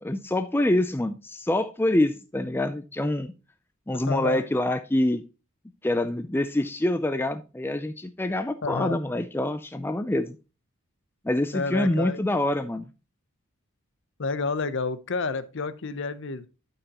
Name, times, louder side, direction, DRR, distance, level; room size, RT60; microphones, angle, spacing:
voice 1, 0.0-3.3 3.9-5.2 5.8-10.4 11.2-12.9, left 1 dB, 10° left, 0.4 m, -26 dB
voice 2, 3.9-4.4 8.6-9.0 11.5-12.2 14.2-16.5, left 4 dB, 55° left, 0.7 m, -30 dB
12.0 x 5.5 x 2.9 m
head